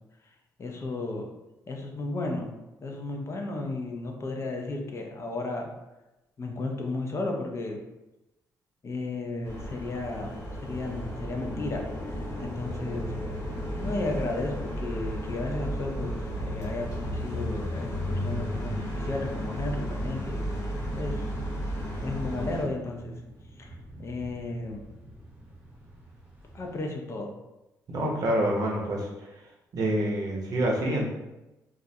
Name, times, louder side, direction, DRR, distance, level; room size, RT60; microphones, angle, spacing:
voice 1, 0.6-1.3 1.7-2.5 2.8-5.7 6.4-7.8 8.8-10.3 10.6-11.8 12.1-13.1 13.7-20.4 20.9-21.3 22.0-23.1 23.6-24.8 26.5-27.3, left 2 dB, 40° left, 2 dB, 0.4 m, -34 dB
sound 1, 9.4-22.6, equal, 55° left, 1.1 m, -33 dB
sound 2, 20.8-26.8, right 1 dB, 25° right, 0.8 m, -46 dB
voice 2, 27.9-29.4 29.7-31.1, right 1 dB, 60° right, -1 dB, 0.6 m, -27 dB
2.4 x 2.0 x 2.7 m, 0.98 s
cardioid pair, 80°, 7 cm